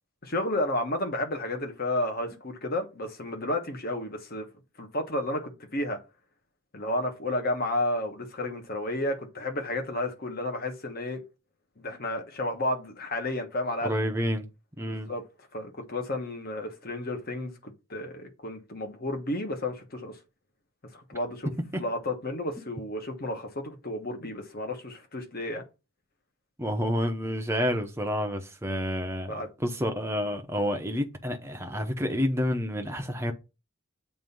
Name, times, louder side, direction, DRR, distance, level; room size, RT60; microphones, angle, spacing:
voice 1, 0.2-4.5 4.8-6.0 6.7-11.2 11.8-14.0 14.9-15.2 15.5-20.2 20.9-21.5 21.8-25.6 29.3-29.5, left 1 dB, 45° left, 1.2 m, -32 dB
voice 2, 13.8-14.5 14.8-15.1 21.7-21.8 26.6-33.3, equal, 10° right, 0.8 m, -29 dB
7.7 x 2.8 x 5.4 m
head